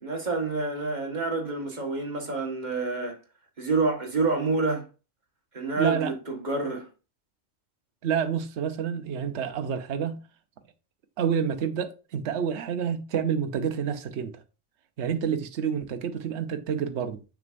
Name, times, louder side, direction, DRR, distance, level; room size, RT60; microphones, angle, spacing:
voice 1, 0.0-3.2 3.6-4.8 5.5-6.8, right 3 dB, 35° right, 1.6 m, -28 dB
voice 2, 5.8-6.1 8.0-10.2 11.2-14.3 15.0-17.2, right 7 dB, 65° right, 1.0 m, -28 dB
6.5 x 6.2 x 2.5 m
omnidirectional pair, 1.3 m